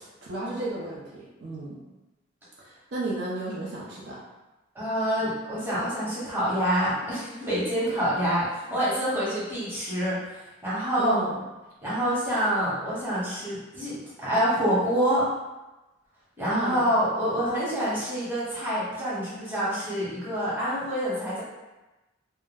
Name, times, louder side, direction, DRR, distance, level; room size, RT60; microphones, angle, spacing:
voice 1, 0.0-1.8 2.6-4.2 11.0-11.4 16.5-16.9, right 2 dB, 60° right, -5 dB, 0.5 m, -33 dB
voice 2, 4.7-10.2 10.6-11.2 11.8-15.3 16.4-21.4, equal, 10° right, -10 dB, 0.9 m, -26 dB
2.2 x 2.1 x 3.3 m, 1.1 s
head